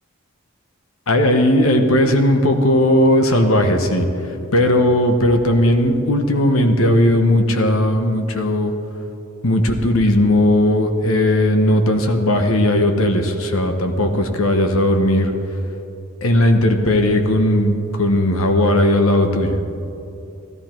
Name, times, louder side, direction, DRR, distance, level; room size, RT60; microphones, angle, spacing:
voice 1, 1.1-4.1 4.5-8.7 9.4-15.3 16.2-19.6, left 1 dB, 80° left, 6 dB, 1.1 m, -16 dB
13.5 x 13.5 x 4.5 m, 2.8 s
head